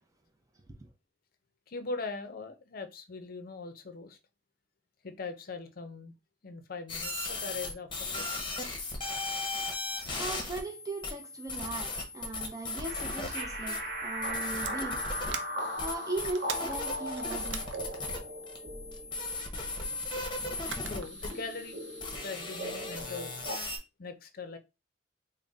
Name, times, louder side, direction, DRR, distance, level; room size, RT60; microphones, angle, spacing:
voice 1, 1.7-4.2 5.0-6.1 6.4-8.5 20.9-21.8 22.2-23.4 24.0-24.6, left 3 dB, 50° left, 0.6 m, -41 dB
sound 1, 6.9-23.8, left 3 dB, 25° left, 0.8 m, -37 dB
voice 2, 10.2-15.4 15.7-17.7 18.1-18.2, right 2 dB, 20° right, 0.6 m, -39 dB
sound 2, 12.8-23.6, equal, 55° right, 1.2 m, -39 dB
sound 3, 14.6-18.6 19.8-20.1 20.7-22.0, right 7 dB, 70° right, 0.5 m, -44 dB
3.6 x 2.1 x 3.8 m
head